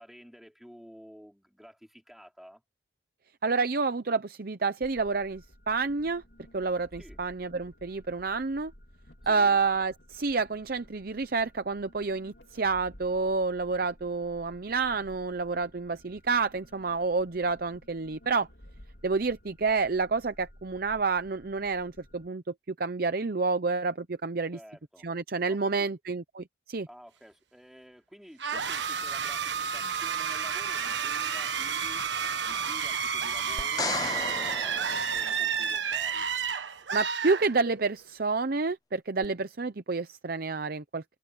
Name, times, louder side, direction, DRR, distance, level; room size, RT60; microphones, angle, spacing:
voice 1, 0.0-2.6 7.0-7.2 9.2-9.6 24.5-25.1 25.5-25.9 26.9-36.3, equal, ahead, 5.0 m, -51 dB
voice 2, 3.4-6.2 6.5-8.7 9.3-18.5 19.0-24.6 25.0-26.9 36.9-41.2, right 4 dB, 50° right, 0.7 m, -29 dB
sound 1, 4.8-22.3, equal, 60° left, 3.8 m, -55 dB
sound 2, 28.4-38.0, right 7 dB, 70° right, 1.4 m, -31 dB
sound 3, 33.6-35.9 39.2-39.3, left 4 dB, 20° left, 0.4 m, -35 dB
head